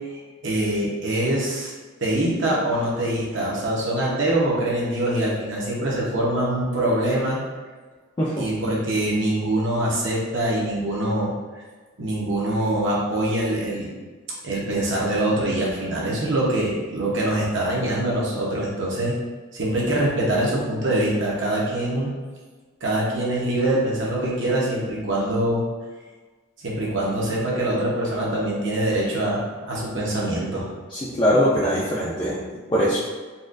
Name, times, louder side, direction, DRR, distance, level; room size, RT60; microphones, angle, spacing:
voice 1, 0.0-1.7 2.0-7.4 8.4-11.6 12.0-13.9 14.4-19.2 19.5-22.1 22.8-25.6 26.6-30.7, right 1 dB, 60° right, -5 dB, 0.9 m, -24 dB
voice 2, 30.9-33.0, equal, 25° left, -8 dB, 0.4 m, -22 dB
4.1 x 2.4 x 2.5 m, 1.4 s
head